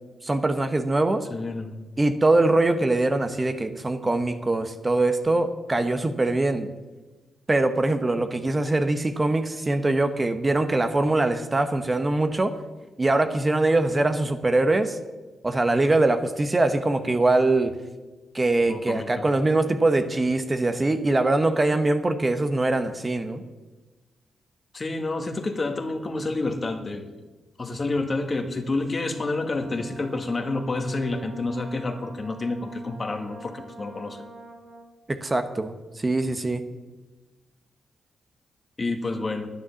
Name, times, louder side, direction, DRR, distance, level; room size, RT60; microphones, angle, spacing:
voice 1, 0.2-1.3 2.0-6.7 7.5-12.5 13.0-15.0 15.4-17.8 18.3-23.4 35.1-36.6, right 2 dB, 30° right, 9 dB, 1.1 m, -23 dB
voice 2, 1.3-1.8 18.6-19.3 24.7-27.0 27.6-34.2 38.8-39.5, left 2 dB, 40° left, 6 dB, 1.7 m, -29 dB
Brass instrument, 29.1-35.0, right 2 dB, 50° right, 1.9 m, -45 dB
10.0 x 9.6 x 7.0 m, 1.2 s
cardioid pair, 60°, 0 cm